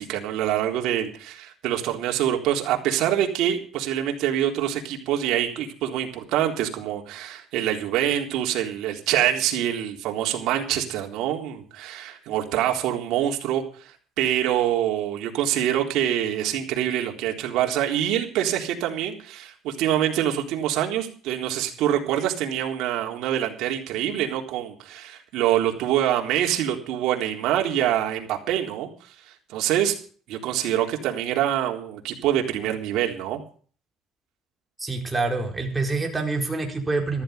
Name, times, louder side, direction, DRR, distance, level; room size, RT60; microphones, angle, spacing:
voice 1, 0.0-28.9 29.5-30.0 30.3-33.4, right 11 dB, 70° right, 2 dB, 3.8 m, -25 dB
voice 2, 34.8-37.2, right 3 dB, 15° right, 2 dB, 4.6 m, -26 dB
14.5 x 14.0 x 5.2 m, 0.43 s
cardioid pair, 135°, 0 cm